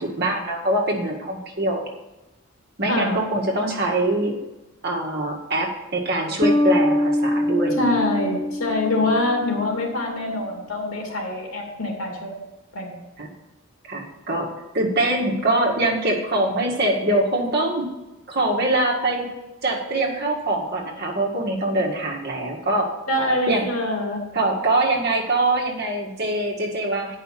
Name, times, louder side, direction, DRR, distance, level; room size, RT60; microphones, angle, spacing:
voice 1, 0.0-1.9 2.8-4.4 4.8-8.0 9.0-9.1 13.2-13.3 13.9-14.5 14.7-17.9 18.3-19.3 19.6-22.9 23.5-23.7 24.3-27.2, right 1 dB, 50° right, -1 dB, 1.9 m, -23 dB
voice 2, 2.9-3.2 7.8-12.3 12.7-12.9 23.1-24.2, left 2 dB, 80° left, 0 dB, 2.8 m, -24 dB
sound 1, 6.4-9.8, left 1 dB, 20° left, 0.5 m, -23 dB
9.3 x 5.6 x 7.6 m, 1.0 s
head